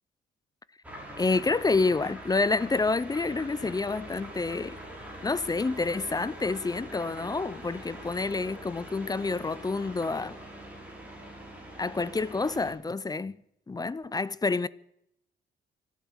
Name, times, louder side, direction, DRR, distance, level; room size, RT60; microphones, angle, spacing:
sound 1, 0.8-12.7, right 1 dB, 5° right, 6.1 m, -43 dB
voice 1, 1.2-4.8 5.2-10.4 11.8-13.4 13.7-14.7, left 3 dB, 20° left, 0.6 m, -28 dB
24.5 x 8.4 x 6.2 m
cardioid pair, 90°, 20 cm